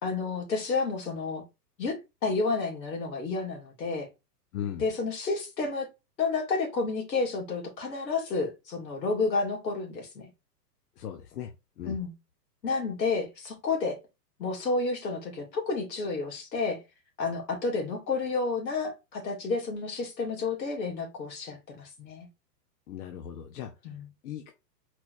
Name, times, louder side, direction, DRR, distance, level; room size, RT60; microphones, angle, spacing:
voice 1, 0.0-1.4 1.8-4.1 4.8-5.9 6.2-10.3 11.8-12.1 12.6-14.0 14.4-16.8 17.2-22.3 23.8-24.1, left 4 dB, 85° left, 2.5 m, -30 dB
voice 2, 4.5-4.8 11.0-11.5 11.8-12.0 22.9-23.7 24.2-24.5, left 10 dB, 65° left, 1.0 m, -37 dB
4.4 x 4.3 x 2.6 m
hypercardioid pair, 130°, 50 cm